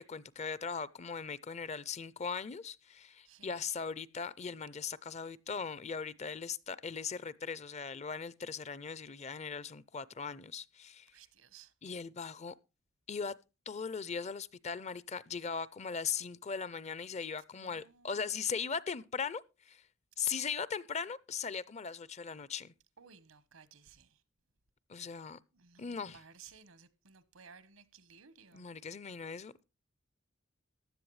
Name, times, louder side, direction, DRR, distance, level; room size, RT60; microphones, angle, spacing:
voice 1, 0.0-11.1 11.8-12.5 13.1-13.3 13.7-19.8 20.2-22.7 24.9-25.4 25.8-26.2 28.5-29.6, left 6 dB, 35° left, 0.5 m, -39 dB
voice 2, 3.2-3.7 11.1-11.7 17.5-18.5 23.0-24.2 25.5-28.7, right 6 dB, 90° right, 1.2 m, -58 dB
15.0 x 10.5 x 3.2 m
head